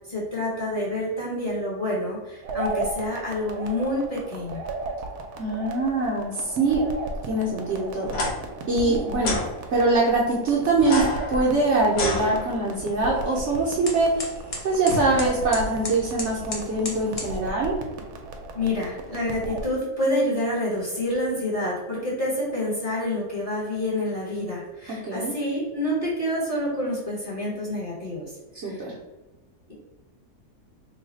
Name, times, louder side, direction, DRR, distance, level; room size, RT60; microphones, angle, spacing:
voice 1, 0.1-4.6 8.8-9.0 18.5-28.3 28.6-28.8, left 1 dB, 25° left, -7 dB, 1.0 m, -28 dB
sound 1, 2.4-19.7, right 2 dB, 80° right, 1.1 m, -35 dB
voice 2, 5.4-6.9 7.3-8.1 8.7-9.3 9.7-11.0 11.3-14.2 14.6-17.8 24.9-25.3 28.6-28.9, right 2 dB, 60° right, -5 dB, 0.9 m, -23 dB
sound 2, 8.1-8.3 9.2-9.5 10.8-12.8, left 1 dB, 75° left, 1.3 m, -28 dB
sound 3, 10.6-17.4, left 1 dB, 40° left, 0.5 m, -37 dB
3.1 x 2.3 x 4.0 m, 1.1 s
omnidirectional pair, 1.6 m